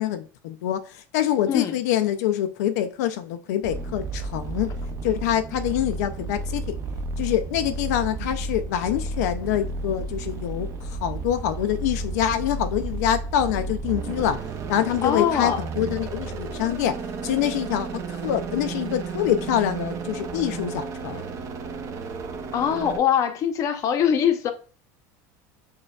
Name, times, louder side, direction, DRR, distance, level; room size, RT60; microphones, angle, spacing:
voice 1, 0.0-4.7 5.0-6.6 7.2-14.4 14.7-21.2, left 11 dB, 85° left, 0.3 m, -25 dB
sound 1, 3.6-23.0, right 3 dB, 35° right, 0.5 m, -32 dB
voice 2, 15.0-15.6 22.5-24.5, left 8 dB, 40° left, 0.6 m, -22 dB
6.3 x 2.2 x 2.3 m
supercardioid pair, 135°, 9 cm